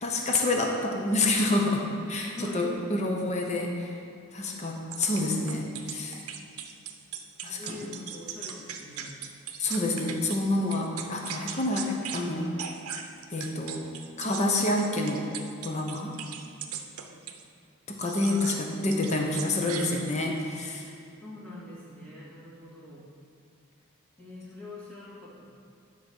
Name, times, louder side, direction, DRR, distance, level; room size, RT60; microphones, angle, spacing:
voice 1, 0.0-4.0 4.3-6.2 7.4-7.8 9.6-12.5 13.3-13.8 14.2-15.3 15.6-16.2 17.9-20.9, left 2 dB, 30° left, 1 dB, 0.8 m, -28 dB
voice 2, 2.2-2.6 4.5-4.7 7.4-9.2 17.1-17.3 21.2-23.0 24.2-25.5, left 2 dB, 5° left, -8 dB, 2.1 m, -44 dB
sound 1, 4.9-10.4 10.7-12.3 12.6-17.4 18.0-18.6 18.9-20.4, right 8 dB, 85° right, 0.7 m, -39 dB
10.5 x 4.2 x 6.2 m, 2.5 s
head